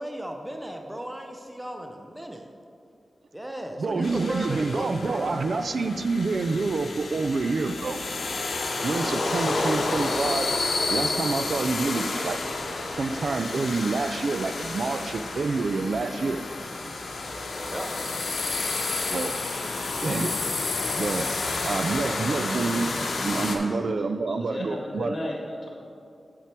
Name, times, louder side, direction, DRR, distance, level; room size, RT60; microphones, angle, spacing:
voice 1, 0.0-2.5 3.3-5.3 17.6-17.9, right 1 dB, 10° right, 3 dB, 0.5 m, -35 dB
voice 2, 3.8-8.0 8.8-10.5 10.9-12.4 13.0-16.4 18.9-19.4 20.0-20.4 21.0-21.3 21.6-22.9 23.2-25.2, right 3 dB, 70° right, 10 dB, 0.3 m, -27 dB
sound 1, 4.0-23.6, left 3 dB, 85° left, 0.9 m, -30 dB
voice 3, 23.6-25.7, left 1 dB, 50° left, -3 dB, 1.8 m, -36 dB
8.2 x 5.9 x 4.4 m, 2.4 s
wide cardioid pair, 85°, 0 cm